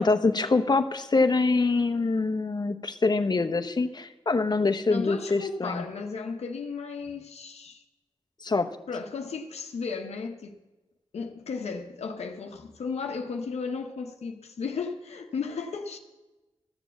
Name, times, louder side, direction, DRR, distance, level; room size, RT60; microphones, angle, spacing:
voice 1, 0.0-5.8 8.4-8.7, left 3 dB, 40° left, 0.9 m, -25 dB
voice 2, 4.9-7.8 8.9-10.6 11.1-16.0, left 5 dB, 85° left, 0.9 m, -34 dB
13.0 x 6.9 x 7.3 m
cardioid pair, 55°, 11 cm